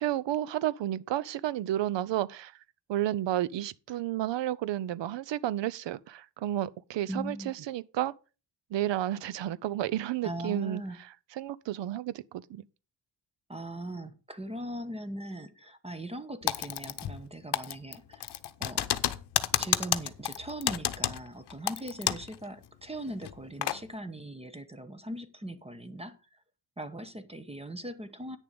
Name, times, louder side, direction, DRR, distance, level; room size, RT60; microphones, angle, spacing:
voice 1, 0.0-2.6 2.9-8.1 8.7-10.8 11.4-12.6, right 13 dB, 80° right, 0.7 m, -31 dB
voice 2, 7.1-7.5 10.2-11.0 13.5-18.3 18.6-18.9 19.5-26.4 26.8-28.4, right 1 dB, 15° right, 0.9 m, -40 dB
Typing, 16.5-17.3 17.5-22.4 22.6-22.7 23.2-23.8, left 11 dB, 65° left, 0.8 m, -30 dB
9.3 x 6.9 x 5.2 m
cardioid pair, 115°, 43 cm